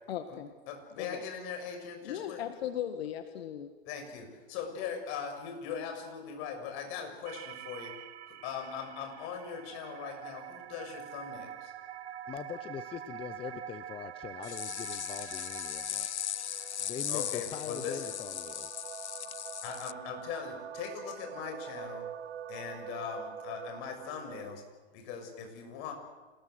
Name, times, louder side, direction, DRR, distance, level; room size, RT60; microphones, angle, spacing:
voice 1, 0.1-0.5 1.0-1.2 2.0-3.7, left 10 dB, 65° left, 8 dB, 1.9 m, -37 dB
voice 2, 0.7-2.4 3.9-8.0 8.3-11.7 17.1-18.1 19.6-22.1 22.5-24.6 24.9-25.9, left 7 dB, 40° left, 5 dB, 6.6 m, -40 dB
sound 1, 7.3-24.6, right 9 dB, 75° right, 1.5 m, -45 dB
voice 3, 12.3-16.1 16.8-18.8, left 8 dB, 15° left, 11 dB, 0.8 m, -42 dB
sound 2, 14.4-19.9, left 11 dB, 85° left, 0.8 m, -38 dB
27.5 x 20.0 x 7.9 m, 1.3 s
hypercardioid pair, 135°, 33 cm